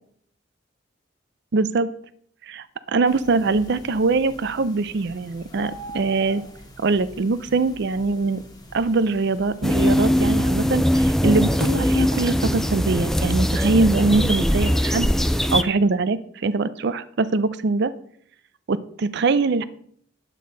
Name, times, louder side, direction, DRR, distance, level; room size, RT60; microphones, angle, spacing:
voice 1, 1.5-1.9 2.5-2.6 2.9-6.4 6.8-8.4 8.7-15.1 15.5-17.9 18.7-19.6, right 3 dB, 60° right, 15 dB, 0.5 m, -22 dB
sound 1, 3.1-10.1, equal, 20° left, 1.4 m, -43 dB
sound 2, 9.6-15.6, equal, ahead, 0.4 m, -21 dB
9.5 x 8.4 x 4.0 m, 0.63 s
head